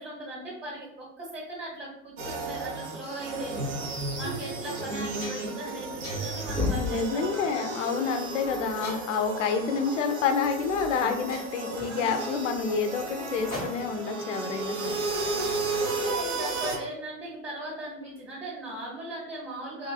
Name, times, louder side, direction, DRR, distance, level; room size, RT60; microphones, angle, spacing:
voice 1, 0.0-3.5 4.1-7.5 11.9-12.0 14.7-14.8 15.2-19.9, right 1 dB, 30° right, -5 dB, 1.1 m, -39 dB
sound 1, 2.2-16.8, right 3 dB, 65° right, 0.8 m, -33 dB
sound 2, 3.9-4.0 4.5-4.6 4.9-5.6 6.0-6.5 7.2-7.5 8.8-9.3 10.5-10.6 10.9-11.0 11.3-14.1, left 1 dB, 90° left, 0.9 m, -42 dB
sound 3, 6.4-7.1 8.8-8.9 10.8-10.9 11.8-11.9, left 5 dB, ahead, 0.5 m, -30 dB
voice 2, 6.7-15.0, left 5 dB, 65° left, 6 dB, 0.5 m, -28 dB
3.0 x 2.5 x 2.2 m, 0.83 s
figure-of-eight pair, 80°, 40 cm